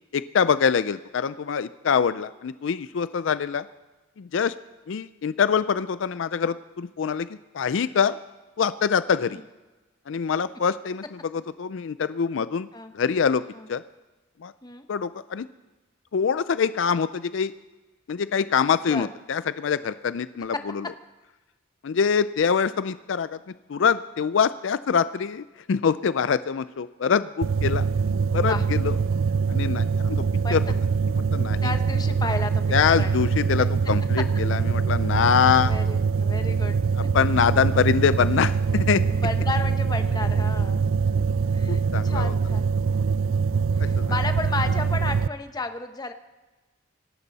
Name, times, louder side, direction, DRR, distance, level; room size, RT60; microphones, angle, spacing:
voice 1, 0.0-3.7 4.2-4.5 4.9-7.3 7.5-8.2 8.6-9.4 10.1-12.7 12.9-13.4 13.7-13.8 14.4-14.5 14.9-15.5 16.1-17.5 18.1-20.8 21.8-23.4 23.7-27.8 28.3-29.0 29.5-30.2 30.5-30.6 31.2-31.7 32.7-35.7 37.0-39.0 41.7-42.3 44.0-44.1, left 6 dB, 65° left, 14 dB, 0.4 m, -24 dB
sound 1, 27.4-45.3, right 5 dB, 70° right, 0.4 m, -23 dB
voice 2, 28.3-28.6 30.4-30.6 31.6-32.6 33.0-33.3 35.6-36.8 39.2-40.8 41.5-42.7 43.3-46.1, left 3 dB, 20° left, 8 dB, 0.9 m, -33 dB
26.0 x 12.5 x 4.1 m, 1.2 s
head